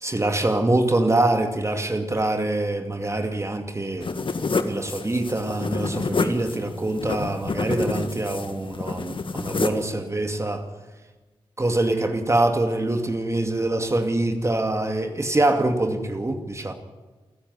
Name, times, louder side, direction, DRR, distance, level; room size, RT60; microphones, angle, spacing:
voice 1, 0.0-4.1 4.6-10.7 11.6-16.7, right 2 dB, 30° right, 2.4 m, -24 dB
sound 1, 4.0-9.9, left 4 dB, 55° left, 1.9 m, -28 dB
28.0 x 10.5 x 9.8 m
cardioid pair, 60°, 10 cm